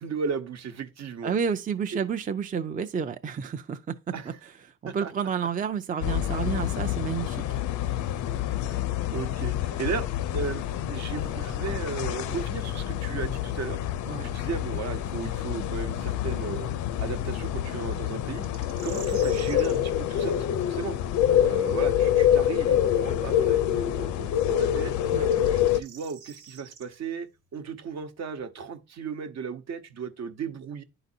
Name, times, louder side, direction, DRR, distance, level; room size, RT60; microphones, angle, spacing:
voice 1, 0.0-1.3 1.9-2.1 4.1-4.4 4.8-5.1 8.7-8.8 9.1-13.8 14.2-16.7 17.0-18.4 18.8-21.0 21.4-24.9 25.3-30.8, right 5 dB, 60° right, 1.0 m, -35 dB
voice 2, 1.2-4.0 4.8-7.4 14.1-14.3 25.1-25.3, right 7 dB, 25° right, 0.5 m, -30 dB
sound 1, 6.0-25.8, left 10 dB, 75° left, 0.5 m, -27 dB
sound 2, 18.4-19.8 22.9-23.0 25.1-26.9, right 6 dB, 90° right, 1.5 m, -46 dB
11.0 x 4.0 x 2.7 m
cardioid pair, 90°, 30 cm